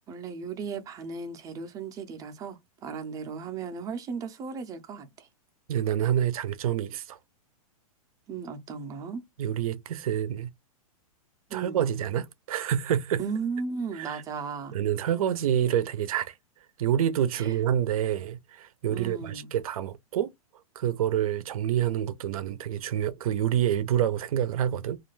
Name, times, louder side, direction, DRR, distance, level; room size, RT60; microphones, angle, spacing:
voice 1, 0.1-5.3 8.3-9.2 11.5-11.9 13.2-14.8 17.3-17.6 18.9-19.5, right 5 dB, 20° right, 0.5 m, -36 dB
voice 2, 5.7-7.2 9.4-10.5 11.5-13.2 13.9-14.2 14.7-16.3 16.8-20.3 20.8-25.0, right 10 dB, 70° right, 0.5 m, -27 dB
2.4 x 2.1 x 3.1 m
hypercardioid pair, 140°, 19 cm